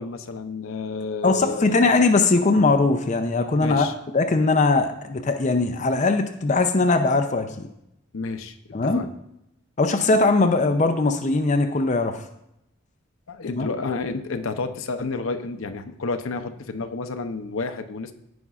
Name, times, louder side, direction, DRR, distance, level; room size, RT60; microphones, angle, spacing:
voice 1, 0.0-1.9 3.6-3.9 8.1-8.6 8.8-9.1 13.3-18.1, left 3 dB, 80° left, 7 dB, 0.7 m, -30 dB
voice 2, 1.2-3.9 4.1-7.7 8.7-9.1 9.8-12.1 13.5-13.7, left 3 dB, 35° left, 6 dB, 0.5 m, -20 dB
15.5 x 5.2 x 2.4 m, 0.81 s
head